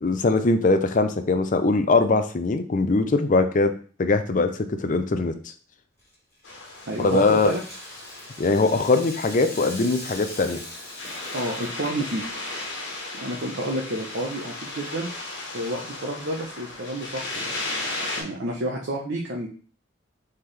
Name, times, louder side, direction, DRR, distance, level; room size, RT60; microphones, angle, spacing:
voice 1, 0.0-5.5 7.0-7.5 8.4-10.6, left 3 dB, 40° left, 8 dB, 0.5 m, -21 dB
Rattle (instrument), 6.0-12.2, left 1 dB, 15° left, 1.6 m, -41 dB
sound 1, 6.4-18.2, left 2 dB, 70° left, 1.4 m, -36 dB
voice 2, 6.9-7.6 11.3-12.2 13.1-17.5 18.1-19.5, right 1 dB, 65° right, -1 dB, 0.8 m, -30 dB
4.4 x 3.8 x 3.2 m, 0.40 s
head